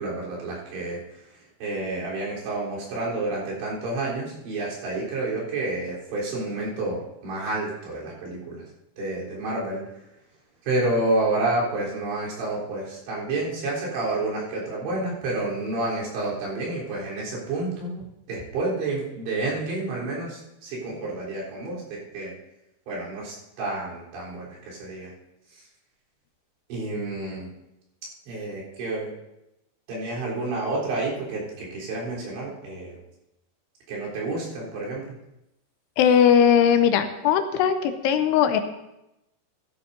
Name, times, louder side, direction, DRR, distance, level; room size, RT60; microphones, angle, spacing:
voice 1, 0.0-8.7 9.0-9.8 10.6-22.3 22.9-25.1 25.5-25.6 26.7-27.5 28.3-29.1 29.9-33.0 33.9-35.2, right 2 dB, 85° right, -6 dB, 6.0 m, -29 dB
voice 2, 36.0-38.6, left 8 dB, 85° left, 8 dB, 2.7 m, -19 dB
16.0 x 13.0 x 2.7 m, 0.88 s
omnidirectional pair, 5.0 m